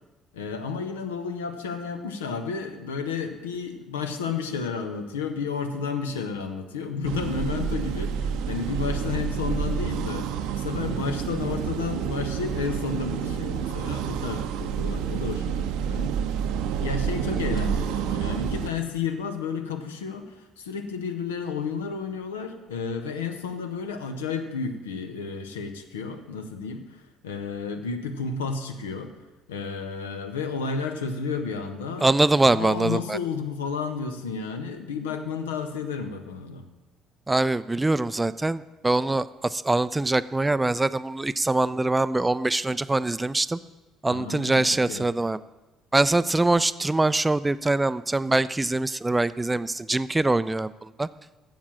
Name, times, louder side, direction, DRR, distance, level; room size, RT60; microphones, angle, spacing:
voice 1, 0.3-16.1 16.8-29.1 29.5-32.1 32.5-36.6 44.1-45.1, left 5 dB, 80° left, 7 dB, 0.7 m, -32 dB
sound 1, 7.0-18.7, right 8 dB, 65° right, 0.5 m, -29 dB
voice 2, 32.0-33.2 37.3-43.6 44.0-45.4 45.9-51.1, right 2 dB, 15° right, 16 dB, 0.3 m, -23 dB
7.5 x 7.3 x 7.4 m, 1.1 s
figure-of-eight pair, 50°, 0 cm